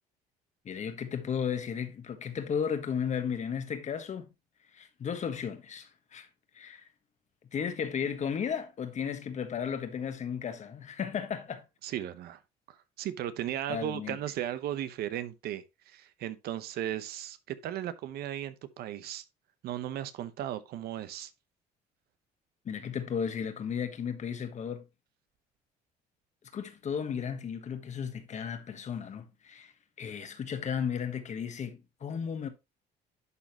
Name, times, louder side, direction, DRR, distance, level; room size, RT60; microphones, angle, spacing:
voice 1, 0.6-4.3 4.7-6.3 6.5-6.9 7.5-11.6 13.7-14.2 22.6-24.8 26.5-29.7 30.0-32.5, left 7 dB, 45° left, 1.3 m, -34 dB
voice 2, 11.8-12.4 12.7-19.2 19.6-21.3, right 11 dB, 70° right, 0.8 m, -36 dB
11.0 x 4.1 x 2.9 m
cardioid pair, 95°, 17 cm